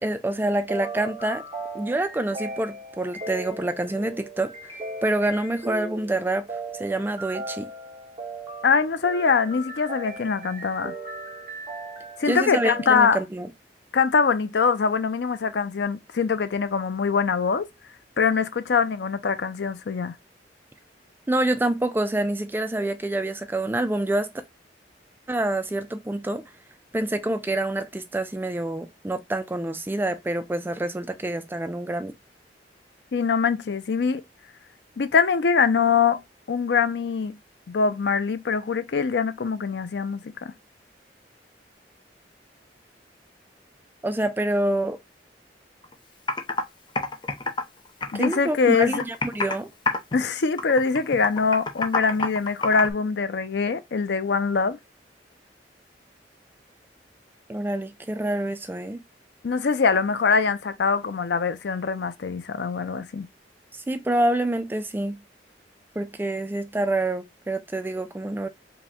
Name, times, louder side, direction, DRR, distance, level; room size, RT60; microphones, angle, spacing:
voice 1, 0.0-1.4 1.7-4.7 5.0-6.5 6.7-7.7 12.3-13.5 21.3-24.3 25.3-26.4 26.9-32.1 44.0-45.0 48.1-49.7 57.5-59.0 63.9-65.2 66.0-68.5, right 1 dB, 10° right, 0.3 m, -27 dB
sound 1, 0.7-13.0, right 2 dB, 30° right, 1.7 m, -37 dB
voice 2, 8.6-10.9 12.2-13.2 13.9-17.7 18.2-20.1 33.1-34.2 35.0-36.2 36.5-37.4 37.7-40.5 48.1-49.0 50.1-54.8 59.4-63.3, left 5 dB, 65° left, 0.5 m, -23 dB
Computer keyboard, 45.8-45.9 46.3-46.6 47.0-48.5 48.8-49.6 49.9-50.2 50.6-52.9, left 3 dB, 25° left, 0.6 m, -27 dB
4.9 x 2.2 x 3.5 m
head